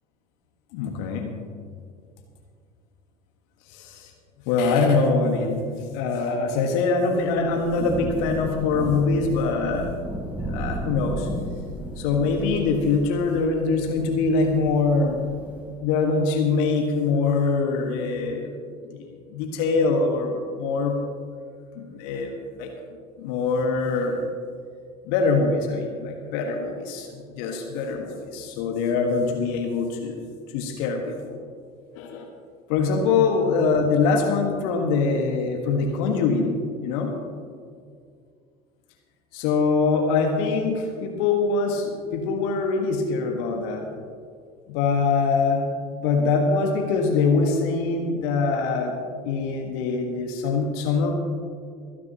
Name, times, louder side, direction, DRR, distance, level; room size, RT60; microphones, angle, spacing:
voice 1, 0.7-1.3 3.7-4.1 4.5-9.9 10.5-11.3 12.0-15.2 15.8-18.5 18.9-20.9 21.8-22.3 22.6-22.7 23.2-24.2 25.1-30.2 30.5-31.4 32.0-32.3 32.7-37.1 39.3-43.9 44.7-45.6 46.0-49.0 49.2-51.1, left 4 dB, 60° left, 3 dB, 1.6 m, -23 dB
Thunder / Rain, 7.2-15.8, right 1 dB, 10° right, 3.6 m, -34 dB
27.5 x 9.5 x 3.0 m, 2.2 s
figure-of-eight pair, 65°, 20 cm